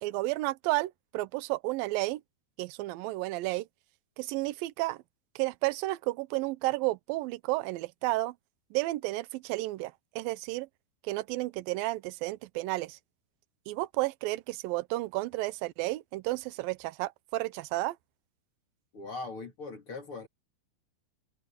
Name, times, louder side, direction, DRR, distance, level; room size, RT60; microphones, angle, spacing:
voice 1, 0.0-2.2 2.6-3.7 4.2-5.0 5.4-8.4 8.7-10.7 11.0-13.0 13.7-18.0, right 20 dB, 80° right, 2.4 m, -32 dB
voice 2, 18.9-20.3, left 3 dB, 40° left, 3.1 m, -40 dB
omnidirectional pair, 4.4 m